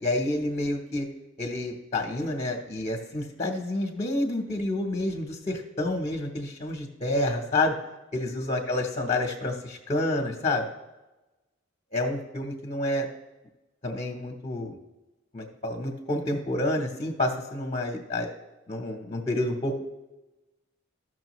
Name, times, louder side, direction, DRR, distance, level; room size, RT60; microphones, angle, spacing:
voice 1, 0.0-1.1 1.4-7.7 8.1-10.7 11.9-13.1 13.8-14.8 15.3-18.3 18.7-19.8, left 2 dB, 30° left, 1 dB, 0.9 m, -29 dB
14.5 x 6.2 x 3.1 m, 1.1 s
head